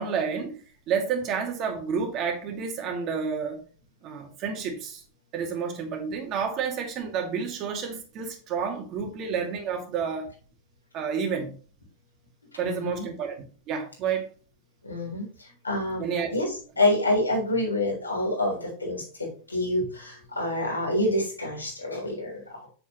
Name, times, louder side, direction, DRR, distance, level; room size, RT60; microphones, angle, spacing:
voice 1, 0.0-3.6 4.0-5.0 5.3-10.3 10.9-11.6 12.6-14.3 16.0-16.3, right 6 dB, 35° right, 2.3 m, -30 dB
voice 2, 12.6-13.0 14.8-16.1 16.3-16.5 16.8-22.6, left 1 dB, 80° left, 3.7 m, -27 dB
8.5 x 6.9 x 3.2 m
figure-of-eight pair, 90°, 0 cm